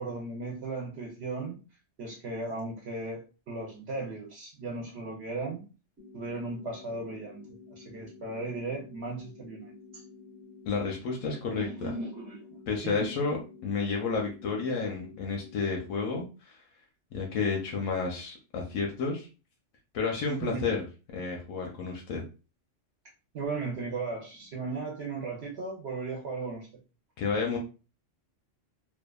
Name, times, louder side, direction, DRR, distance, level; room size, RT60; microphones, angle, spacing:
voice 1, 0.0-1.6 2.0-5.7 6.1-7.5 7.8-10.0 11.5-13.2 20.4-20.6 23.3-26.7, right 3 dB, 65° right, -2 dB, 0.8 m, -36 dB
sound 1, 6.0-16.0, left 4 dB, 15° right, 0.5 m, -51 dB
voice 2, 10.7-11.9 12.7-13.4 13.6-16.6 17.1-19.3 19.9-20.9 21.1-22.2 27.2-27.6, left 4 dB, 85° left, 0 dB, 0.9 m, -31 dB
2.7 x 2.2 x 2.2 m, 0.33 s
omnidirectional pair, 1.3 m